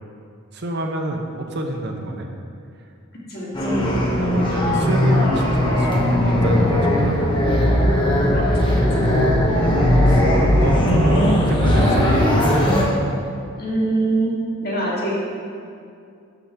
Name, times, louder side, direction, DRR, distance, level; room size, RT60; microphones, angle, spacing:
voice 1, 0.5-2.3 4.2-7.3 9.5-12.4, right 1 dB, 50° right, 2 dB, 0.8 m, -27 dB
voice 2, 3.3-3.8 8.3-9.1 10.8-11.0 13.6-14.3 14.6-15.1, right 2 dB, 45° left, -6 dB, 2.0 m, -24 dB
sound 1, 3.5-12.8, left 1 dB, 20° left, 1.1 m, -18 dB
6.9 x 5.2 x 6.3 m, 2.4 s
head